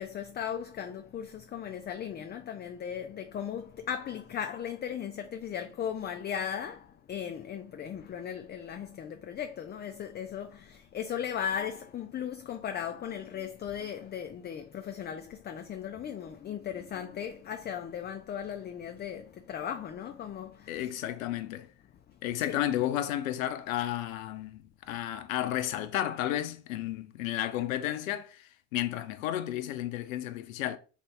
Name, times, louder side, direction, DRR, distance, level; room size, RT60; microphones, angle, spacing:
voice 1, 0.0-20.9 22.4-22.5, left 8 dB, 25° left, 0.4 m, -37 dB
voice 2, 20.7-21.7 22.2-30.8, left 12 dB, 80° left, 0.5 m, -32 dB
3.2 x 2.7 x 3.2 m
hypercardioid pair, 55°, 40 cm